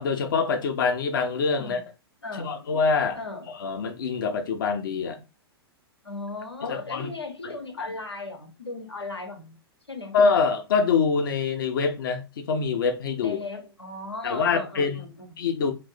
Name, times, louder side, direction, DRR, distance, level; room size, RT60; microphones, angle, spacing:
voice 1, 0.0-1.8 2.4-3.2 3.5-5.2 6.6-7.1 7.4-7.9 10.1-13.4 14.2-15.1 15.4-15.7, left 5 dB, 55° left, 0.8 m, -25 dB
voice 2, 2.2-2.5 3.2-3.5 6.0-9.5 9.9-10.2 13.2-15.3, left 2 dB, 85° left, 1.1 m, -37 dB
3.1 x 2.7 x 3.9 m
figure-of-eight pair, 105°, 13 cm